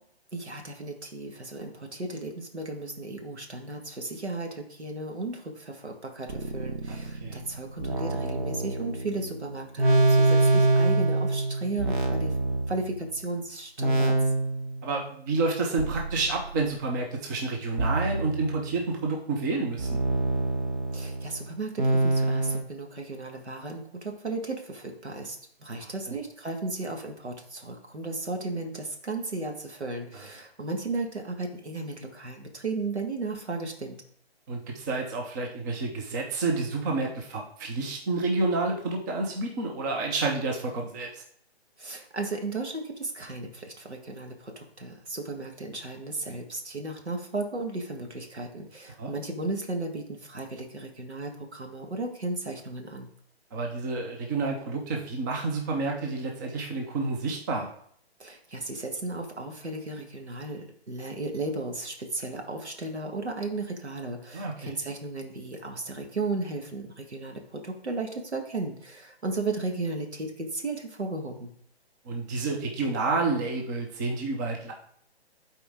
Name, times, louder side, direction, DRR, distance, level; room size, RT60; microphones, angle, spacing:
voice 1, 0.3-12.3 12.7-14.2 20.9-34.0 41.8-53.1 58.2-71.5, right 2 dB, 90° right, 3 dB, 1.7 m, -35 dB
sound 1, 6.3-13.3 13.8-14.9 15.8-17.0 17.8-19.0 19.8-22.6, right 2 dB, 50° right, 1.2 m, -26 dB
voice 2, 6.9-7.3 14.8-20.0 26.1-26.2 30.1-30.2 34.5-41.2 49.0-49.1 53.5-57.7 64.3-64.7 72.0-74.7, right 3 dB, 20° right, 1 dB, 0.7 m, -29 dB
11.5 x 4.3 x 3.6 m, 0.64 s
figure-of-eight pair, 145°, 33 cm